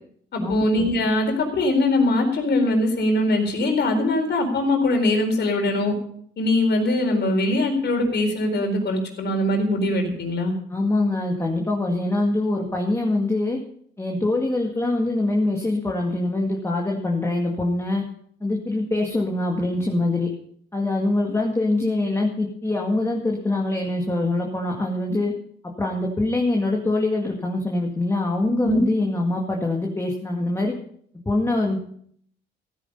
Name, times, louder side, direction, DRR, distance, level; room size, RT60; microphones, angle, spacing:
voice 1, 0.3-5.9 6.4-10.5 28.6-28.8, left 1 dB, 60° left, 4 dB, 4.3 m, -22 dB
voice 2, 10.7-13.6 14.0-18.0 18.4-20.3 20.7-25.3 25.6-30.7 31.3-31.8, left 2 dB, 15° left, 0 dB, 2.0 m, -24 dB
15.0 x 10.0 x 5.4 m, 0.64 s
cardioid pair, 90°, 20 cm